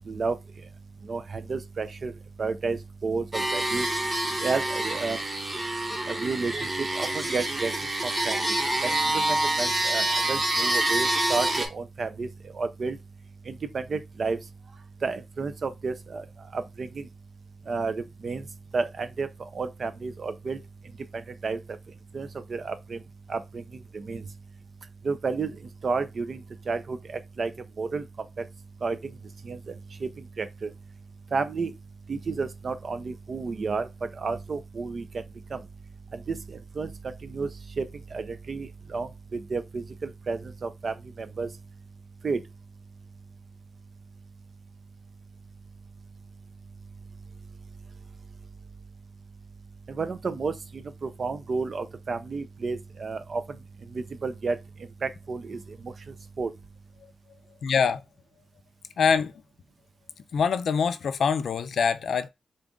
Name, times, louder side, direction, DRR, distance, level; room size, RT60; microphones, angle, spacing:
voice 1, 1.1-2.1 2.4-3.9 4.4-5.2 6.1-6.5 6.8-7.7 8.3-8.4 8.8-12.3 12.5-13.0 13.5-14.4 15.0-16.2 16.5-17.1 17.7-18.4 18.7-19.3 19.5-20.6 21.4-21.6 22.1-23.0 23.3-23.6 23.9-24.2 25.0-25.5 25.8-27.0 27.4-27.5 27.8-28.0 28.8-29.0 29.4-29.6 30.4-30.7 31.3-31.7 32.1-33.9 34.2-35.0 35.5-35.6 36.3-36.4 36.8-36.9 37.2-37.5 37.8-37.9 38.1-40.9 41.4-41.5 42.2-42.4 49.9-50.5 51.0-53.4 53.9-54.6 55.0-55.6 56.4-56.5, right 4 dB, 40° right, 0.5 m, -31 dB
sound 1, 3.3-11.7, right 1 dB, 20° right, 0.9 m, -27 dB
voice 2, 57.6-58.0 59.0-59.3 60.3-62.3, left 6 dB, 70° left, 0.3 m, -24 dB
3.9 x 2.4 x 3.6 m
wide cardioid pair, 160°, 0 cm